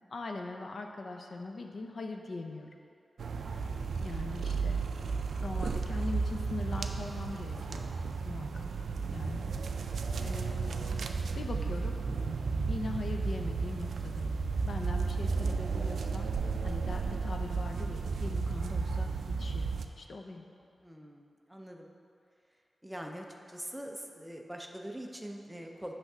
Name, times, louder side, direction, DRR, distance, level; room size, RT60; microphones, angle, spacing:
voice 1, 0.1-2.7 3.5-3.6 4.0-4.8 5.4-7.9 8.2-8.7 9.1-11.1 11.4-12.0 12.7-14.4 14.7-19.1 19.4-19.7 20.0-20.4, left 3 dB, 50° left, 3 dB, 0.5 m, -41 dB
sound 1, 3.2-19.9, right 4 dB, 80° right, 0.3 m, -33 dB
voice 2, 20.8-21.9 22.8-25.9, equal, 5° right, 1 dB, 0.5 m, -43 dB
8.1 x 3.4 x 5.9 m, 2.5 s
wide cardioid pair, 180°, 0 cm